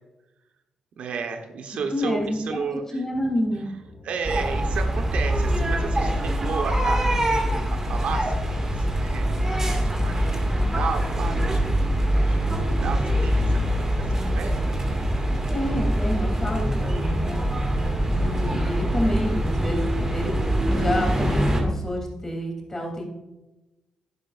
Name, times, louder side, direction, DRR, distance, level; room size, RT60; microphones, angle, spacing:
voice 1, 1.0-3.0 4.0-14.7 18.0-18.5, right 5 dB, 80° right, 4 dB, 1.3 m, -34 dB
voice 2, 1.9-2.4 2.9-3.7 15.5-17.4 18.1-20.3 20.7-23.1, left 1 dB, 20° left, 0 dB, 3.4 m, -28 dB
sound 1, 3.1-18.8, left 1 dB, 80° left, 2.9 m, -44 dB
sound 2, 4.2-21.6, equal, 25° right, 2.2 m, -24 dB
11.0 x 10.5 x 2.6 m, 1.0 s
cardioid pair, 100°, 2 cm